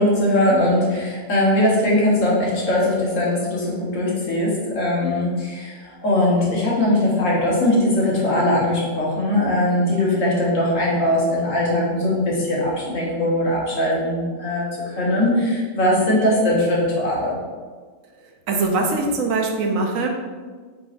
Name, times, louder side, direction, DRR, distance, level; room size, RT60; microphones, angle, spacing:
voice 1, 0.0-17.4, left 1 dB, 70° left, -5 dB, 1.5 m, -20 dB
voice 2, 18.2-20.1, right 3 dB, 80° right, 2 dB, 1.0 m, -22 dB
4.6 x 3.8 x 2.5 m, 1.5 s
omnidirectional pair, 1.4 m